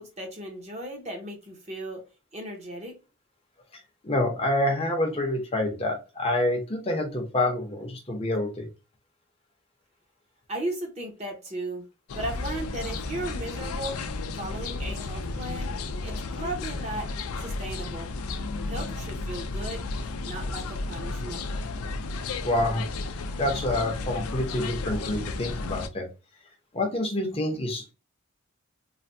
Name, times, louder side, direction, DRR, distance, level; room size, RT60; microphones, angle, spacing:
voice 1, 0.0-2.0 2.3-3.0 10.5-11.8 12.1-14.0 14.4-15.7 16.0-17.1 17.4-18.1 18.7-19.8 20.2-21.4, right 1 dB, 30° right, 0.8 m, -36 dB
voice 2, 4.0-8.7 22.4-22.9 23.4-26.1 26.7-27.9, left 1 dB, 25° left, 0.6 m, -27 dB
sound 1, 12.1-25.9, left 3 dB, 85° left, 0.4 m, -33 dB
3.2 x 2.2 x 2.6 m
head